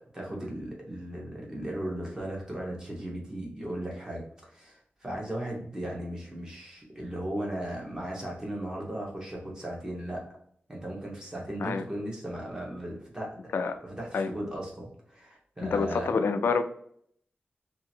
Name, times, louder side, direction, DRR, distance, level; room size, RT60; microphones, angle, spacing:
voice 1, 0.1-10.2 10.7-16.1, right 1 dB, 15° right, -2 dB, 1.0 m, -37 dB
voice 2, 15.7-16.6, left 5 dB, 80° left, 8 dB, 0.3 m, -27 dB
2.8 x 2.5 x 2.7 m, 0.66 s
wide cardioid pair, 140°, 4 cm